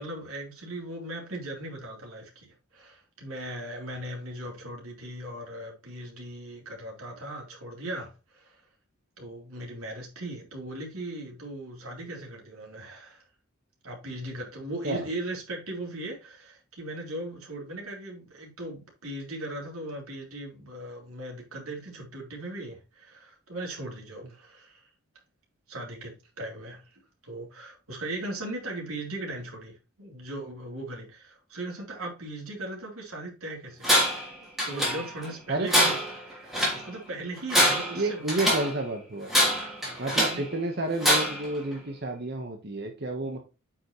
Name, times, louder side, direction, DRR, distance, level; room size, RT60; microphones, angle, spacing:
voice 1, 0.0-2.5 2.7-8.6 9.2-13.2 13.8-24.9 25.7-29.7 30.0-34.1 34.6-38.4 39.8-40.4 43.2-43.4, right 1 dB, 90° right, 3.6 m, -38 dB
Tools, 33.8-34.3 34.6-35.3 35.7-36.8 37.4-38.7 39.3-40.5 41.0-41.5, equal, ahead, 3.3 m, -24 dB
voice 2, 37.9-39.3 40.0-43.4, right 2 dB, 50° right, 1.3 m, -30 dB
8.9 x 6.1 x 3.2 m
head